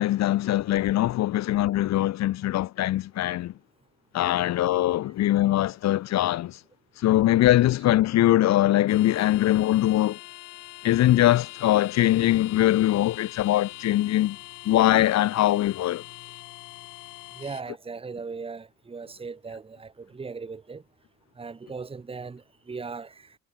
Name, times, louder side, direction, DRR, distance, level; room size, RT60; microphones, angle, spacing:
voice 1, 0.0-3.5 4.1-6.6 7.0-10.2 10.8-14.4 14.6-16.0, left 14 dB, 55° left, 1.5 m, -22 dB
sound 1, 8.9-17.6, left 20 dB, 75° left, 1.7 m, -43 dB
voice 2, 17.4-20.8 21.4-23.4, right 4 dB, 15° right, 2.3 m, -38 dB
cardioid pair, 145°, 33 cm